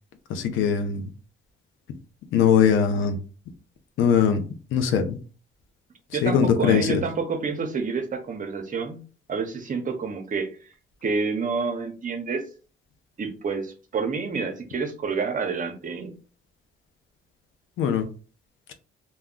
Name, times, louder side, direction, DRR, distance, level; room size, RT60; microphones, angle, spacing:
voice 1, 0.3-1.1 2.3-3.2 4.0-5.2 6.2-7.0 17.8-18.1, left 7 dB, 80° left, 7 dB, 0.6 m, -21 dB
voice 2, 6.1-9.0 9.3-10.5 11.0-12.4 13.2-16.1, right 4 dB, 40° right, 6 dB, 0.7 m, -28 dB
2.2 x 2.1 x 3.6 m, 0.37 s
cardioid pair, 90°, 20 cm